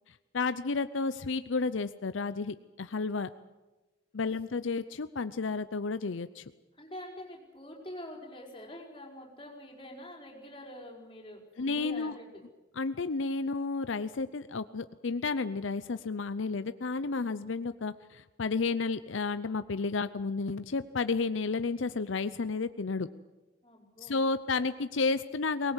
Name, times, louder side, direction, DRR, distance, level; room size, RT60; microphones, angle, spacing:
voice 1, 0.3-3.3 4.1-6.4 11.6-12.1 12.8-23.1 24.0-25.7, left 4 dB, 75° left, 12 dB, 0.6 m, -32 dB
voice 2, 6.7-12.4 23.6-24.2, left 1 dB, 25° left, -1 dB, 5.0 m, -46 dB
22.0 x 19.5 x 8.1 m, 1.1 s
head